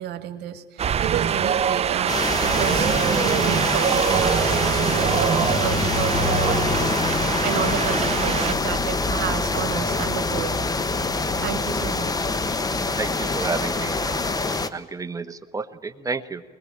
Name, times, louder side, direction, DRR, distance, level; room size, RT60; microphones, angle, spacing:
voice 1, 0.0-10.6 11.1-12.3, right 11 dB, 75° right, 9 dB, 2.1 m, -31 dB
Wind, 0.8-8.5, right 8 dB, 40° right, 0.7 m, -23 dB
sound 1, 2.1-14.7, left 3 dB, 20° left, 1.3 m, -25 dB
voice 2, 13.0-14.3 14.7-16.4, right 4 dB, 20° right, 9 dB, 1.3 m, -31 dB
22.0 x 21.5 x 8.7 m, 1.3 s
cardioid pair, 110°, 17 cm